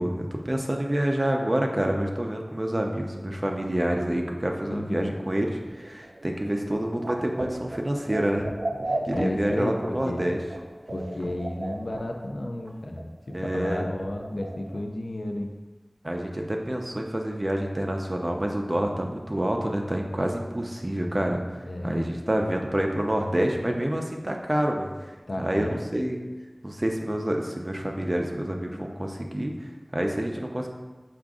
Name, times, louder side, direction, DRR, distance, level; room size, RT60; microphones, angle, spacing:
voice 1, 0.0-8.5 9.0-10.4 13.3-13.8 16.0-21.4 21.8-26.2 26.6-30.7, right 1 dB, 40° right, 2 dB, 0.5 m, -28 dB
voice 2, 4.6-5.1 8.9-10.3 10.9-15.5 21.7-22.7 25.3-25.8, left 1 dB, 85° left, 3 dB, 0.4 m, -33 dB
sound 1, 5.3-12.7 13.0-13.1 13.3-13.4 13.7-14.8, right 1 dB, 90° right, 0.4 m, -36 dB
4.8 x 2.5 x 3.6 m, 1.3 s
wide cardioid pair, 40°, 0 cm